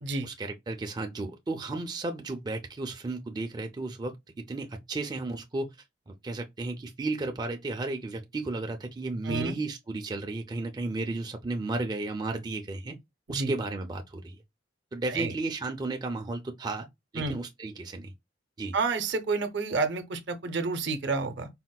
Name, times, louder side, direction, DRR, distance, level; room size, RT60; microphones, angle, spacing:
voice 1, 0.2-5.7 6.1-13.0 13.3-14.4 14.9-16.9 17.1-18.1 18.6-18.7, right 2 dB, 20° right, 0.4 m, -34 dB
voice 2, 9.2-9.5 13.3-13.5 15.1-15.3 17.2-17.4 18.7-21.5, right 4 dB, 65° right, 0.6 m, -29 dB
4.2 x 2.1 x 2.2 m
head